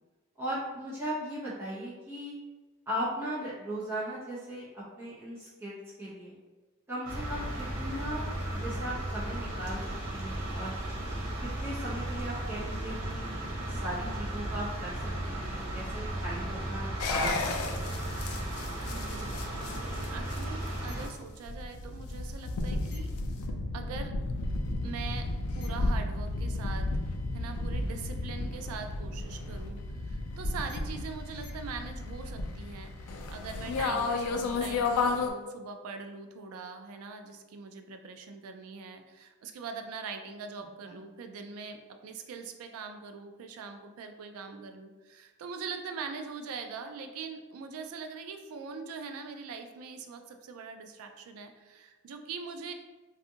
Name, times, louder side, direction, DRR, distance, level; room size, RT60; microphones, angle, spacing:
voice 1, 0.4-2.3 2.9-6.3 6.9-9.8 10.1-10.7 11.4-13.3 13.6-17.3 17.7-18.0 40.8-41.0, right 1 dB, 10° right, -9 dB, 0.9 m, -37 dB
sound 1, 7.0-21.1, right 1 dB, 90° right, 0.7 m, -35 dB
sound 2, 17.0-35.3, left 3 dB, 85° left, 0.3 m, -33 dB
voice 2, 18.9-19.4 20.1-23.1 23.7-24.2 24.8-25.3 25.5-26.9 27.3-52.7, right 5 dB, 75° right, 7 dB, 0.3 m, -42 dB
2.5 x 2.3 x 2.7 m, 1.3 s
head